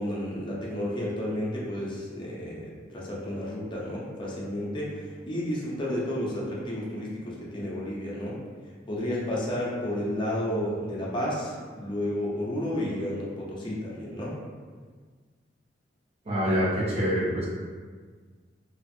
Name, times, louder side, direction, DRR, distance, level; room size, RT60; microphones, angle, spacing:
voice 1, 0.0-8.4 8.9-14.3, left 1 dB, 25° left, -5 dB, 0.5 m, -31 dB
voice 2, 16.3-17.5, equal, 35° right, -7 dB, 0.6 m, -25 dB
2.4 x 2.4 x 2.5 m, 1.5 s
head